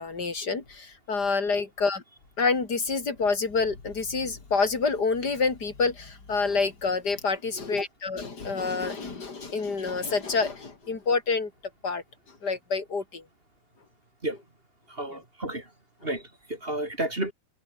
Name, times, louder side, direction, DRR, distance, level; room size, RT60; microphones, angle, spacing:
voice 1, 0.0-2.0 2.4-11.5 11.8-12.0 12.4-13.2 15.1-15.2, left 4 dB, 30° left, 3.8 m, -27 dB
voice 2, 14.9-15.7 16.0-17.3, right 1 dB, 15° right, 4.1 m, -32 dB
open air
omnidirectional pair, 3.5 m